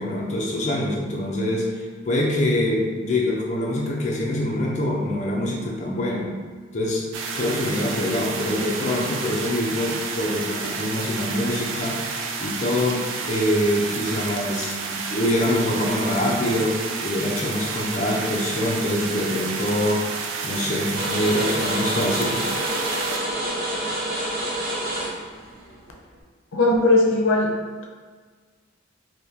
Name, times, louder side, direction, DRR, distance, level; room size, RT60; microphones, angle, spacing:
voice 1, 0.0-6.4 6.7-7.0 7.3-12.0 12.4-16.8 17.0-20.0 20.4-22.4, left 1 dB, 35° left, -3 dB, 0.5 m, -24 dB
sound 1, 7.1-23.2, right 5 dB, 80° right, 0.4 m, -30 dB
sound 2, 20.9-26.2, right 1 dB, 45° right, 0.7 m, -28 dB
voice 2, 26.5-27.5, left 2 dB, 90° left, 0 dB, 0.6 m, -18 dB
3.4 x 2.7 x 2.8 m, 1.5 s
head